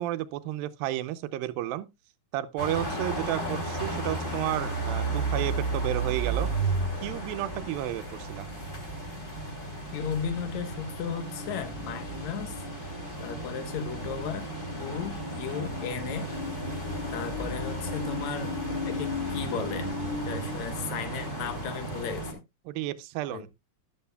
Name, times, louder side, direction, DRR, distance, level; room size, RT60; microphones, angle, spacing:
voice 1, 0.0-1.9 2.3-6.5 7.0-8.5 22.7-23.5, right 14 dB, 80° right, 2.3 m, -32 dB
sound 1, 2.6-22.3, right 1 dB, 15° left, 2.4 m, -33 dB
voice 2, 9.9-12.6 13.2-14.5 14.8-16.3 17.1-19.9 20.3-22.3 23.3-23.5, left 6 dB, 60° left, 2.1 m, -35 dB
12.5 x 10.5 x 2.3 m
omnidirectional pair, 4.2 m